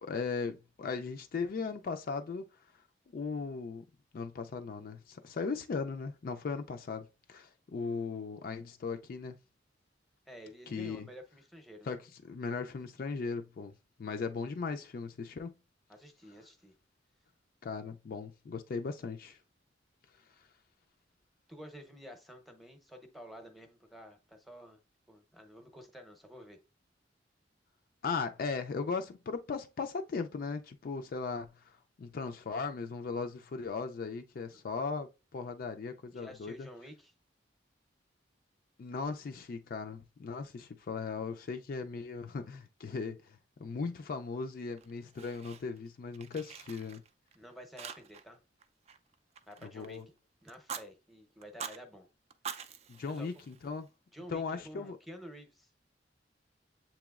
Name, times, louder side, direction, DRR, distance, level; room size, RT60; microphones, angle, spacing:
voice 1, 0.0-2.4 3.1-3.8 4.1-9.4 10.7-11.1 11.8-12.0 12.2-13.7 14.0-15.5 17.6-19.4 28.0-36.7 38.8-47.0 49.6-50.1 52.9-53.9 54.3-55.0, left 4 dB, 50° left, 0.3 m, -38 dB
voice 2, 10.3-12.0 15.9-16.7 21.5-24.8 25.1-26.6 34.5-34.7 36.1-37.1 47.3-48.4 49.5-50.0 50.4-52.1 53.2-53.3 54.1-55.7, equal, ahead, 0.7 m, -50 dB
Fire, 44.8-45.9 46.1-47.4 47.8-48.3 48.6-50.0 50.5-50.9 51.4-51.8 52.3-53.9, right 7 dB, 35° right, 0.4 m, -45 dB
7.4 x 3.0 x 2.3 m
head